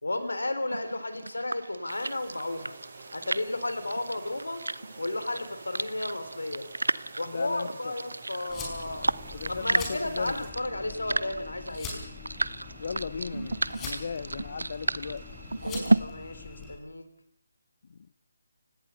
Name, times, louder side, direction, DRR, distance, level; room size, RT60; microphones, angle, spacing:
voice 1, 0.0-2.7 3.1-4.7 5.0-6.7 7.2-9.1 9.5-12.0 15.6-17.1, left 2 dB, 80° left, 10 dB, 3.7 m, -33 dB
sound 1, 0.7-16.0, right 2 dB, 80° right, 0.9 m, -33 dB
sound 2, 1.9-10.5, right 4 dB, 45° right, 7.9 m, -49 dB
voice 2, 7.3-7.9 9.3-10.4 12.8-15.3 17.9-18.1, left 5 dB, 50° left, 15 dB, 0.8 m, -37 dB
sound 3, 8.5-16.8, left 4 dB, 15° left, 5.4 m, -43 dB
29.5 x 17.5 x 5.6 m, 0.74 s
figure-of-eight pair, 150°, 0 cm